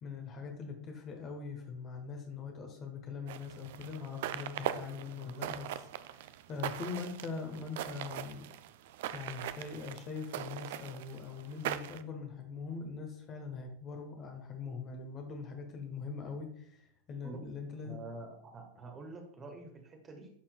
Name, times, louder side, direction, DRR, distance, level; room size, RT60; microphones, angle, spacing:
voice 1, 0.0-8.5 9.1-18.0, left 5 dB, 30° left, 4 dB, 1.2 m, -42 dB
sound 1, 3.3-12.0, right 12 dB, 50° right, 0.3 m, -41 dB
voice 2, 17.8-20.3, right 3 dB, 20° right, 3 dB, 1.3 m, -47 dB
11.5 x 4.3 x 2.3 m, 0.67 s
figure-of-eight pair, 90°, 0 cm